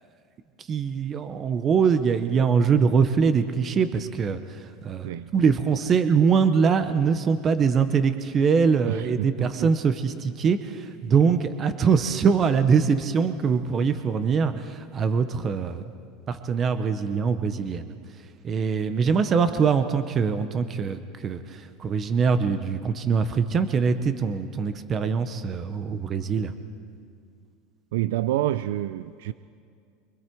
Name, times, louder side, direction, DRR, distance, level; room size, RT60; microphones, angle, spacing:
voice 1, 0.7-15.8 16.3-17.9 18.4-26.6, right 6 dB, 25° right, 10 dB, 0.8 m, -23 dB
voice 2, 5.0-5.3 8.9-9.7 11.2-11.4 27.9-29.3, right 14 dB, 85° right, 14 dB, 0.4 m, -28 dB
25.5 x 23.5 x 4.6 m, 2.3 s
supercardioid pair, 160°, 0 cm